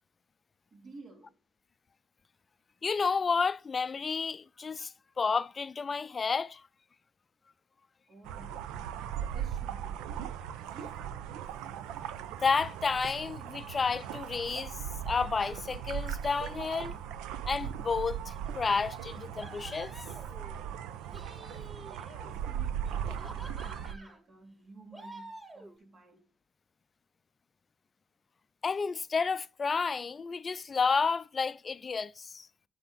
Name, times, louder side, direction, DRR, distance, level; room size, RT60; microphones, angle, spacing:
voice 1, 0.7-1.4 8.1-8.9 9.3-10.4 10.7-11.2 21.1-26.3, right 2 dB, 50° right, 2.8 m, -53 dB
voice 2, 2.8-6.6 12.4-14.8 15.0-17.0 17.5-19.9 28.6-32.5, left 5 dB, 35° left, 0.4 m, -31 dB
sound 1, 8.2-24.0, right 9 dB, 70° right, 0.6 m, -38 dB
sound 2, 18.3-18.8 19.4-20.6 21.0-22.3 22.9-24.2 24.9-25.8, right 2 dB, 10° right, 5.3 m, -49 dB
8.0 x 6.2 x 3.8 m
hypercardioid pair, 50°, 0 cm